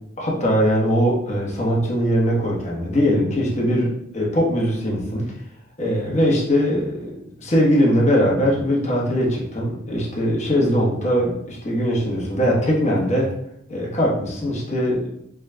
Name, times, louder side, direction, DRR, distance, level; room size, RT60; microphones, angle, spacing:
voice 1, 0.2-5.3 5.8-13.3 13.7-15.1, equal, 35° left, -3 dB, 1.0 m, -21 dB
4.6 x 3.0 x 2.2 m, 0.74 s
head